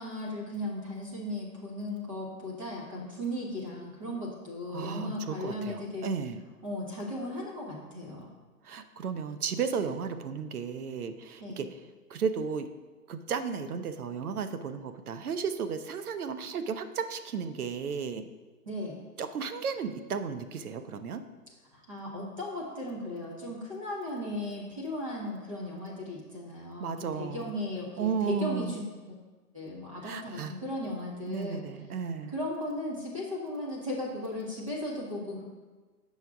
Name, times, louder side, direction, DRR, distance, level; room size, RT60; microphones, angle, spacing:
voice 1, 0.0-6.1 6.6-8.3 11.4-11.6 18.7-19.0 21.7-28.8 29.5-31.6 32.3-35.4, left 1 dB, 20° right, -3 dB, 0.9 m, -36 dB
voice 2, 4.7-6.4 8.6-11.8 12.1-12.7 13.1-18.3 19.2-21.2 26.8-27.5 28.0-28.8 30.0-30.5 31.3-32.4, right 6 dB, 65° right, 10 dB, 0.7 m, -34 dB
8.0 x 6.3 x 3.5 m, 1.3 s
hypercardioid pair, 175°, 48 cm